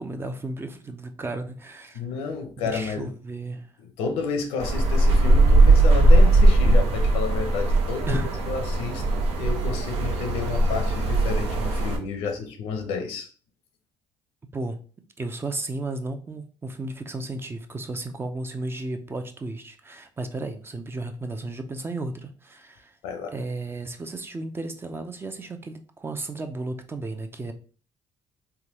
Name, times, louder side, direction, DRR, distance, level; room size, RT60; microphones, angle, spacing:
voice 1, 0.0-2.0 2.7-3.7 8.1-8.4 14.5-14.8 15.2-22.9 23.3-27.5, right 2 dB, 25° right, 0.5 m, -34 dB
voice 2, 1.9-3.1 4.0-13.3 23.0-23.3, left 5 dB, 85° left, 0.7 m, -31 dB
sound 1, 4.6-12.0, right 2 dB, 75° right, 0.8 m, -19 dB
3.5 x 2.2 x 2.9 m
supercardioid pair, 75°, 10 cm